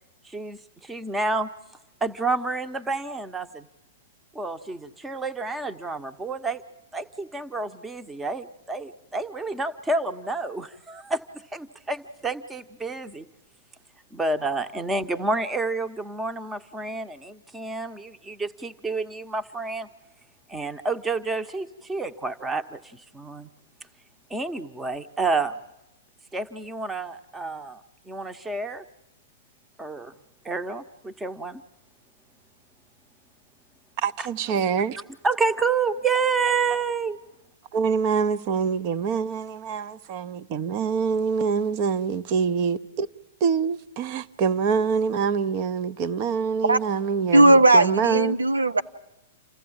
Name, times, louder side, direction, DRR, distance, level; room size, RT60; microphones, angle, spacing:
voice 1, 0.2-1.5 2.0-3.7 4.3-6.6 6.9-13.3 14.1-19.9 20.5-23.5 24.3-25.6 26.3-27.8 28.1-28.8 29.8-30.1 30.4-31.6 34.2-34.3 35.2-37.2, right 3 dB, 10° right, 0.9 m, -29 dB
voice 2, 34.0-35.0 37.7-43.1 43.4-48.4, right 6 dB, 40° right, 0.8 m, -25 dB
voice 3, 47.3-48.8, right 2 dB, 85° right, 0.7 m, -17 dB
28.0 x 14.5 x 8.8 m
figure-of-eight pair, 110°, 0 cm